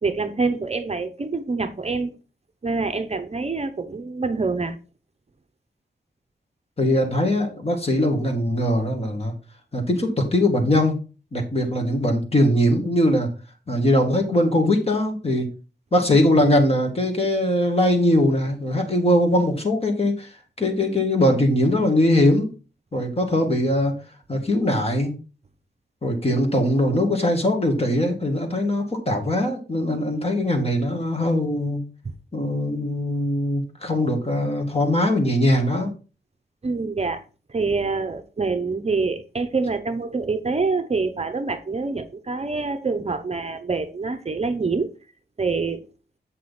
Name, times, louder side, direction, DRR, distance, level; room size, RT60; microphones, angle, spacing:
voice 1, 0.0-2.2 2.6-4.8 32.0-32.1 36.6-37.2 37.5-44.9 45.4-45.8, right 4 dB, 35° right, 0.7 m, -26 dB
voice 2, 6.8-9.3 9.7-11.0 11.3-13.3 13.7-15.5 15.9-20.3 20.6-22.5 22.9-23.9 24.3-25.1 26.0-31.8 32.3-35.9, left 1 dB, 35° left, 2.1 m, -21 dB
8.0 x 6.2 x 4.2 m
wide cardioid pair, 145°, 19 cm